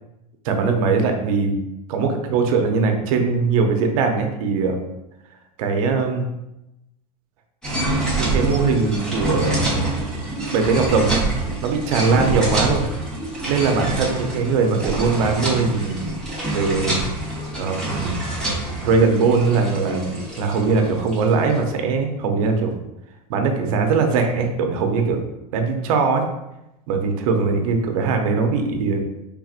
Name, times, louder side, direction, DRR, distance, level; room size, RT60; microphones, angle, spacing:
voice 1, 0.4-1.5 1.9-4.8 5.6-6.3 8.2-9.9 10.5-11.3 11.6-12.9 13.5-16.0 16.5-17.0 17.6-18.2 18.8-22.7 23.3-25.2 25.5-26.2 26.9-29.0, right 4 dB, 60° right, 4 dB, 0.7 m, -21 dB
sound 1, 7.6-21.6, right 2 dB, 5° left, 0.9 m, -26 dB
4.6 x 3.5 x 2.4 m, 0.91 s
supercardioid pair, 165°, 20 cm